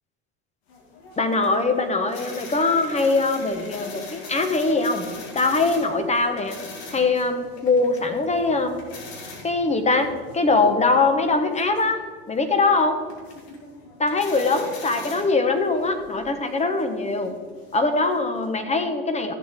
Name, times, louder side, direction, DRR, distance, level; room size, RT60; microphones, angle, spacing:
sound 1, 0.7-18.6, left 3 dB, 90° left, 2.2 m, -42 dB
voice 1, 1.2-5.1 5.3-6.6 6.9-8.8 9.4-13.0 14.0-17.3 17.7-19.3, left 3 dB, 20° left, 7 dB, 1.3 m, -22 dB
14.5 x 7.4 x 3.7 m, 1.5 s
supercardioid pair, 100°, 31 cm